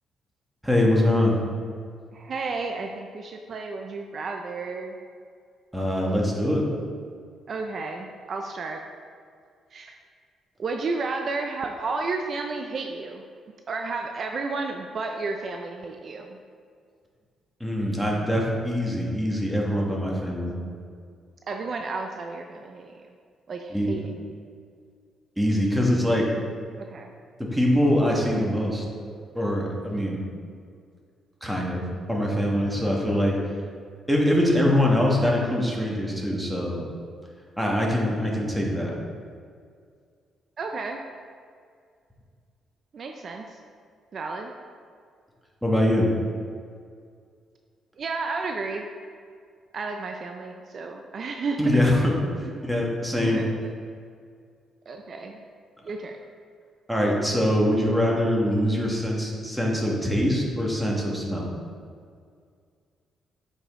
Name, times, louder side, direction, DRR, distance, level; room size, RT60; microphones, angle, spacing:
voice 1, 0.6-1.4 5.7-6.6 17.6-20.5 23.7-23.9 25.4-26.3 27.4-28.8 29.3-30.2 31.4-33.4 34.1-36.8 37.6-39.0 45.6-46.1 51.6-52.2 52.6-53.4 56.9-61.5, left 1 dB, 5° right, -2 dB, 1.6 m, -23 dB
voice 2, 2.1-5.0 7.5-8.8 9.7-10.0 10.6-13.2 13.7-16.4 21.5-22.9 23.5-24.3 26.8-27.1 40.6-41.0 42.9-43.6 44.1-44.5 48.0-48.9 49.7-51.6 52.4-52.7 53.2-53.7 54.9-55.4 55.8-56.2, right 3 dB, 50° right, 3 dB, 0.5 m, -32 dB
8.4 x 5.3 x 3.7 m, 2.1 s
cardioid pair, 90°, 0 cm